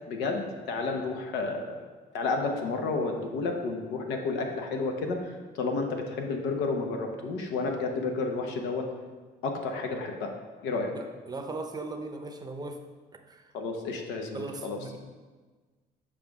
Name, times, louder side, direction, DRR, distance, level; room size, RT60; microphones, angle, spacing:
voice 1, 0.1-1.8 2.1-8.9 9.4-10.3 10.6-10.9 13.5-15.0, left 3 dB, 90° left, 3 dB, 0.9 m, -31 dB
voice 2, 10.9-12.8 13.3-13.5 14.3-15.0, right 3 dB, 25° right, 5 dB, 0.6 m, -38 dB
7.2 x 5.0 x 3.6 m, 1.4 s
cardioid pair, 110°, 17 cm